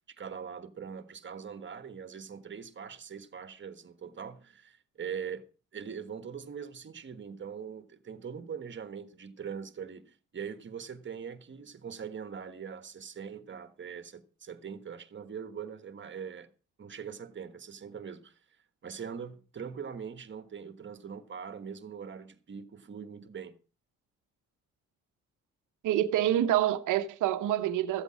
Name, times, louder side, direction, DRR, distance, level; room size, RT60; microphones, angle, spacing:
voice 1, 0.1-5.5 5.7-16.5 16.8-18.4 18.8-23.6, right 7 dB, 40° right, 1.5 m, -42 dB
voice 2, 25.8-28.0, right 12 dB, 85° right, 1.0 m, -27 dB
14.0 x 8.1 x 6.2 m
cardioid pair, 90°, 30 cm